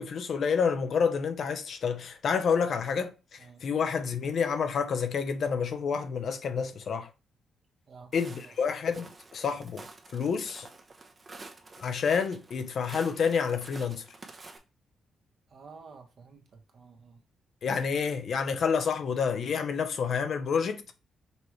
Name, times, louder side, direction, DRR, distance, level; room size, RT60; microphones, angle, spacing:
voice 1, 0.0-7.1 8.1-9.8 10.1-10.7 11.8-14.1 17.6-20.8, left 6 dB, 55° left, 0.6 m, -29 dB
voice 2, 7.9-8.6 15.5-17.2, right 5 dB, 50° right, 1.0 m, -51 dB
Walk footsteps, 8.1-14.6, right 3 dB, 30° right, 0.7 m, -49 dB
5.4 x 3.0 x 3.1 m
cardioid pair, 115°, 0 cm